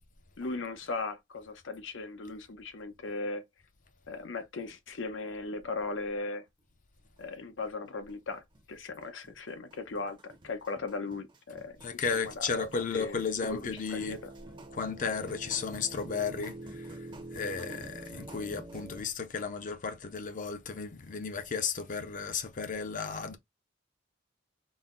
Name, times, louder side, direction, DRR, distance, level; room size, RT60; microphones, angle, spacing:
voice 1, 0.4-3.4 4.1-6.4 7.2-8.4 8.7-11.8 12.4-12.5 12.9-14.2, left 3 dB, 85° left, 0.7 m, -37 dB
sound 1, 7.0-7.1 7.4-7.5 7.9-19.0, right 1 dB, 25° right, 0.6 m, -47 dB
voice 2, 11.8-14.2 14.7-23.4, left 5 dB, 45° left, 0.6 m, -34 dB
4.1 x 2.1 x 3.6 m
head